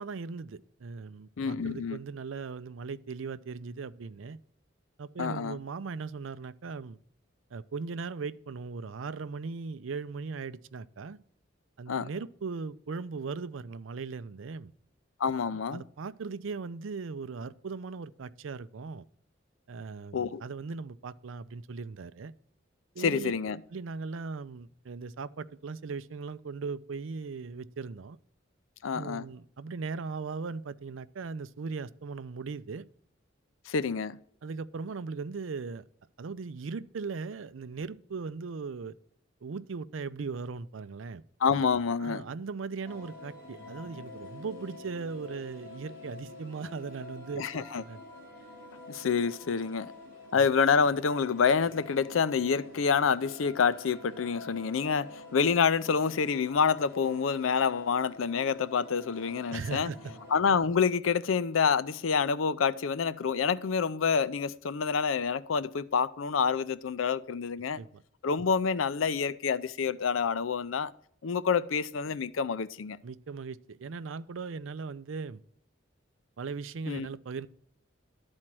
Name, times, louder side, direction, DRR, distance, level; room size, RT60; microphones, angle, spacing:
voice 1, 0.0-4.4 5.0-7.0 7.5-11.2 11.8-14.7 15.5-19.1 19.7-22.3 23.0-23.3 23.7-28.2 28.9-32.9 34.4-35.8 36.2-39.0 39.4-41.2 42.0-48.0 59.5-60.0 67.8-68.0 73.0-75.4 76.4-77.5, right 4 dB, 80° right, 0.5 m, -38 dB
voice 2, 1.4-2.0 5.2-5.6 11.9-12.1 15.2-15.8 20.1-20.4 23.0-23.6 28.8-29.2 33.7-34.2 41.4-42.2 47.4-47.8 48.9-49.9 50.3-59.9 60.3-67.8 68.2-70.9 71.2-73.0 76.9-77.1, left 6 dB, 90° left, 0.5 m, -27 dB
sound 1, 42.8-60.4, left 2 dB, 15° left, 4.0 m, -48 dB
12.0 x 4.4 x 6.1 m
head